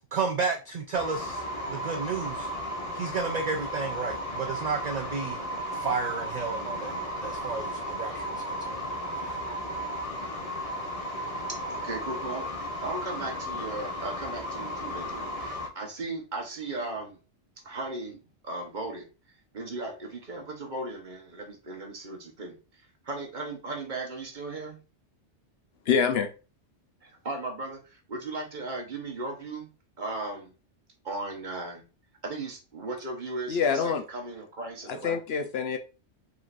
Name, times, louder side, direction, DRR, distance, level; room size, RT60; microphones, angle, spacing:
voice 1, 0.1-2.5 2.9-5.4 5.7-6.9 7.2-8.8, right 5 dB, 60° right, 0.4 m, -32 dB
sound 1, 0.9-15.7, equal, 35° left, 1.0 m, -34 dB
voice 2, 11.7-17.2 17.6-18.2 18.4-19.1 19.5-22.5 23.1-24.8 27.2-27.8 28.1-29.7 30.0-30.5 31.0-31.8 32.2-35.2, right 2 dB, 45° right, 1.2 m, -36 dB
voice 3, 25.9-26.3 33.5-34.0 34.9-35.8, left 6 dB, 65° left, 0.8 m, -26 dB
5.0 x 3.8 x 2.5 m
omnidirectional pair, 1.2 m